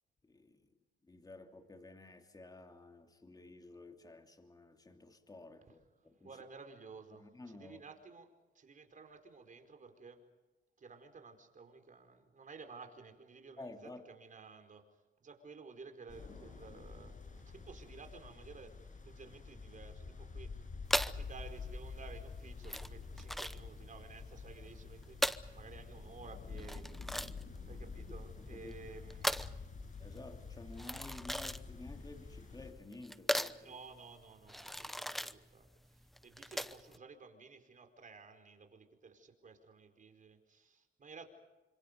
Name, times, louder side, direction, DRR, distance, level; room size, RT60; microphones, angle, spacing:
voice 1, 0.2-0.7 1.0-6.4 7.2-7.8 13.6-14.0 28.3-29.0 30.0-33.8, left 2 dB, 20° left, 2.9 m, -52 dB
voice 2, 6.0-10.2 10.8-14.8 15.2-27.2 27.7-29.6 33.6-41.3, right 4 dB, 40° right, 4.7 m, -54 dB
sound 1, 16.1-32.7, left 4 dB, 40° left, 6.4 m, -48 dB
sound 2, 20.9-37.0, equal, ahead, 0.9 m, -39 dB
29.0 x 26.5 x 5.3 m
cardioid pair, 90°, 20 cm